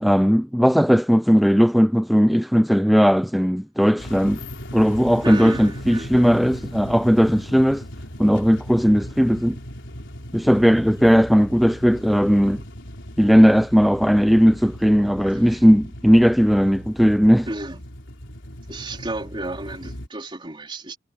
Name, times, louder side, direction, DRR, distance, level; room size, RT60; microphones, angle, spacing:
voice 1, 0.0-4.4 4.7-7.8 8.2-9.6 10.3-12.6 13.2-17.5, equal, ahead, 0.4 m, -17 dB
sound 1, 4.0-20.1, equal, 65° left, 4.6 m, -37 dB
voice 2, 5.2-6.3 15.4-15.6 17.5-17.9 18.7-21.0, right 2 dB, 25° right, 3.5 m, -32 dB
head